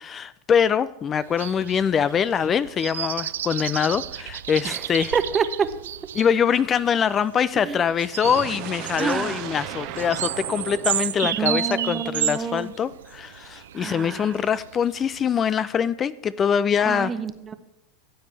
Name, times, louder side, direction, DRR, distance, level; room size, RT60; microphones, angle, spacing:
voice 1, 0.0-5.1 6.1-17.1, left 7 dB, 30° left, 16 dB, 0.3 m, -23 dB
sound 1, 1.3-15.2, right 11 dB, 80° right, 0.3 m, -33 dB
voice 2, 5.1-5.7 7.6-7.8 8.9-9.5 11.3-12.7 13.7-14.3 16.8-17.5, right 6 dB, 25° right, 12 dB, 0.8 m, -27 dB
sound 2, 8.2-12.2, right 11 dB, 55° right, 0.8 m, -36 dB
14.5 x 8.3 x 3.3 m, 0.92 s
hypercardioid pair, 100°, 0 cm